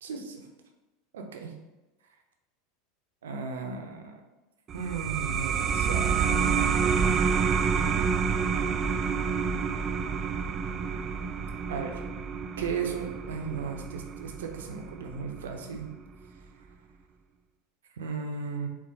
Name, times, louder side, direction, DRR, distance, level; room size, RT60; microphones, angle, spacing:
voice 1, 0.0-0.4 1.1-1.5 3.2-4.2 4.7-6.4 11.7-12.0 12.6-15.9 17.9-18.7, right 5 dB, 80° right, 3 dB, 0.6 m, -35 dB
sound 1, 4.7-15.9, right 6 dB, 35° right, 0.3 m, -28 dB
4.6 x 2.1 x 3.8 m, 1.1 s
hypercardioid pair, 85°, 0 cm